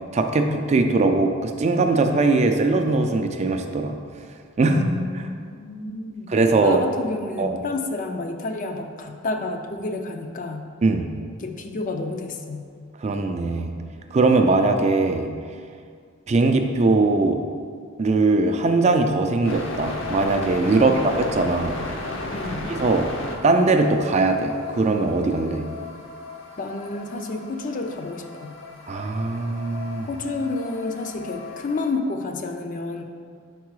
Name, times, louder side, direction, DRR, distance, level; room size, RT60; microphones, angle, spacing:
voice 1, 0.1-4.0 4.6-4.9 5.1-5.3 6.3-6.8 7.4-7.6 10.8-11.1 13.0-13.8 14.1-15.3 16.3-17.4 18.0-21.8 22.7-23.1 23.4-25.6 28.9-30.1, right 3 dB, 35° right, 5 dB, 0.3 m, -20 dB
voice 2, 4.6-6.3 6.6-10.6 11.4-12.6 20.7-21.0 22.3-22.7 26.6-28.6 30.1-33.0, left 3 dB, 40° left, 5 dB, 0.4 m, -30 dB
sound 1, 19.4-31.9, left 2 dB, 65° left, 0.7 m, -35 dB
4.7 x 4.6 x 4.7 m, 2.1 s
head